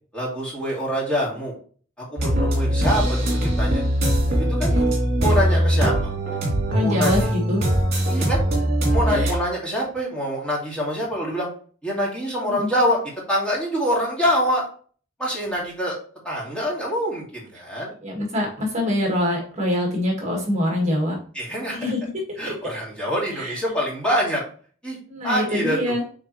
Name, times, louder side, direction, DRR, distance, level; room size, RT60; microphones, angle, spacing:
voice 1, 0.1-1.5 2.0-3.8 4.4-4.8 5.2-5.9 6.8-7.1 8.1-8.4 8.9-11.5 11.8-13.0 13.3-14.6 15.2-16.0 16.2-17.9 21.3-21.9 22.4-24.4 24.8-25.0 25.2-26.0, equal, 5° left, -5 dB, 2.3 m, -25 dB
sound 1, 2.2-9.3, equal, 55° right, 2.8 m, -21 dB
voice 2, 6.7-7.7 8.0-8.1 9.1-9.3 12.5-12.7 18.0-21.2 21.7-22.7 23.3-23.6 25.1-26.0, left 1 dB, 35° right, -1 dB, 1.8 m, -25 dB
8.2 x 3.9 x 3.1 m, 0.43 s
head